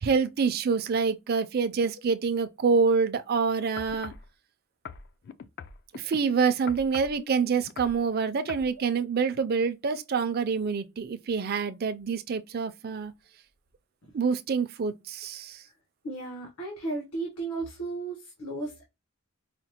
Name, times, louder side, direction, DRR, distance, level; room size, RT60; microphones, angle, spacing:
voice 1, 0.0-4.1 5.9-13.1 14.1-15.6, right 5 dB, 45° right, 0.4 m, -26 dB
sound 1, 3.8-4.3 4.9-6.2 6.7-7.2 7.6-8.0 8.5-8.7 9.3-9.4, left 6 dB, 50° left, 0.3 m, -42 dB
voice 2, 16.0-18.9, right 3 dB, 85° left, 1.1 m, -34 dB
5.0 x 2.1 x 2.8 m
head